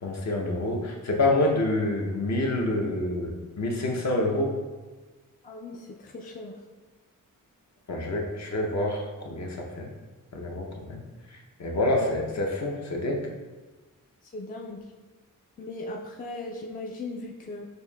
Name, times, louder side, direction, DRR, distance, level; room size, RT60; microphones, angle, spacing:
voice 1, 0.0-4.5 7.9-9.9 10.3-11.0 11.6-13.3, left 1 dB, 55° left, 0 dB, 0.7 m, -27 dB
voice 2, 5.4-6.6 12.0-12.2 14.3-14.8 15.6-17.7, left 2 dB, 25° left, 0 dB, 0.3 m, -38 dB
6.7 x 2.6 x 2.3 m, 1.3 s
wide cardioid pair, 110°, 34 cm